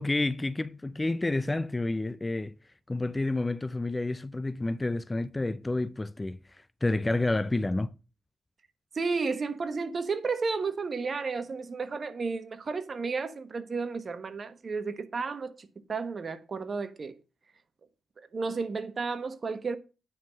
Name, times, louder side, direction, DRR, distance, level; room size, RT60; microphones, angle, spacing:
voice 1, 0.0-2.6 2.9-7.9, left 2 dB, 15° left, 0.4 m, -29 dB
voice 2, 8.9-17.1 18.3-19.8, right 4 dB, 40° right, 1.2 m, -32 dB
9.6 x 5.7 x 6.1 m
cardioid pair, 115°, 0 cm